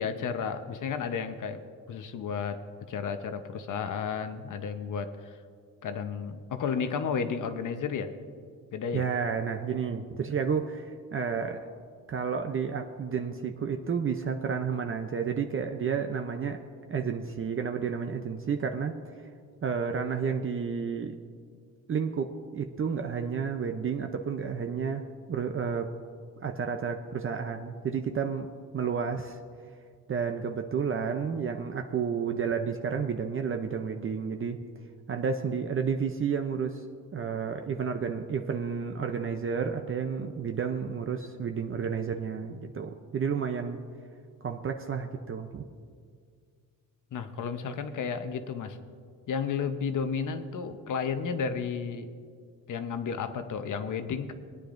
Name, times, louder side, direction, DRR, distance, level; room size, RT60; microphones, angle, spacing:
voice 1, 0.0-1.6 1.9-2.6 2.9-5.4 5.8-8.1 8.7-9.1 47.1-48.8 49.3-52.1 52.7-54.3, left 6 dB, 60° left, 8 dB, 0.9 m, -32 dB
voice 2, 8.9-11.7 12.1-16.6 16.9-18.9 19.6-21.2 21.9-22.3 22.5-25.9 26.4-28.5 28.7-29.4 30.1-34.6 35.1-36.8 37.1-43.8 44.4-45.6, right 6 dB, 40° right, 4 dB, 0.6 m, -31 dB
21.5 x 9.8 x 2.6 m, 2.1 s
cardioid pair, 110°, 35 cm